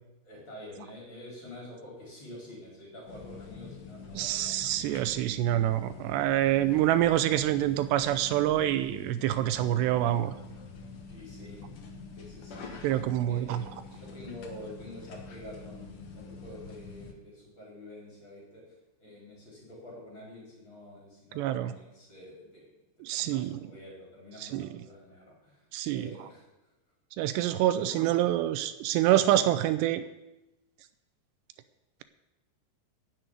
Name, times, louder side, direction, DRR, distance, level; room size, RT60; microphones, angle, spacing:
voice 1, 0.2-4.7 11.1-11.6 12.1-18.6 19.0-22.6 23.0-26.5 27.2-28.1 29.1-29.2, left 1 dB, 30° left, -3 dB, 4.5 m, -47 dB
sound 1, 3.1-17.1, left 4 dB, 80° left, 1.2 m, -46 dB
voice 2, 4.2-10.3 12.8-13.6 21.4-21.7 23.0-23.6 24.4-24.7 25.7-26.1 27.2-30.0, right 13 dB, 85° right, 12 dB, 2.7 m, -26 dB
11.0 x 7.7 x 9.1 m, 0.97 s
omnidirectional pair, 5.0 m